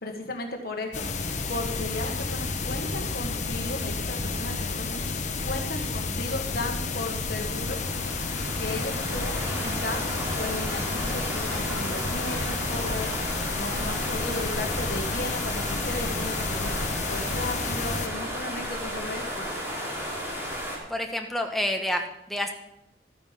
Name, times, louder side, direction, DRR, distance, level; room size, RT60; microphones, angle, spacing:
voice 1, 0.0-5.0 5.4-7.8 8.6-13.1 13.5-19.4, left 2 dB, 60° left, 3 dB, 1.5 m, -35 dB
sound 1, 0.9-18.1, left 3 dB, 45° left, 1.1 m, -31 dB
sound 2, 6.7-20.8, equal, 15° right, 3.6 m, -34 dB
voice 2, 20.9-22.5, left 1 dB, ahead, 3 dB, 1.2 m, -28 dB
13.0 x 9.7 x 5.1 m, 0.85 s
head